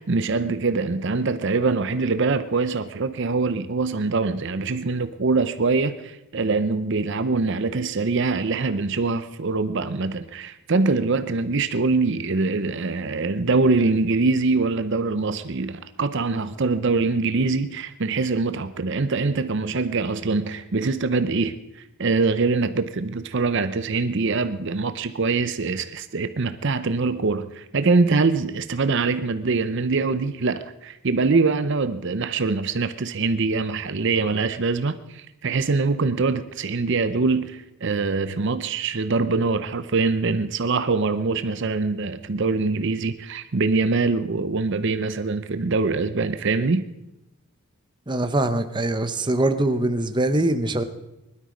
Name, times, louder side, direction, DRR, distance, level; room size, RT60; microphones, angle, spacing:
voice 1, 0.0-46.8, right 3 dB, 55° right, 11 dB, 0.6 m, -23 dB
voice 2, 48.1-50.8, right 2 dB, 20° right, 9 dB, 0.8 m, -23 dB
20.5 x 12.5 x 5.1 m, 0.93 s
head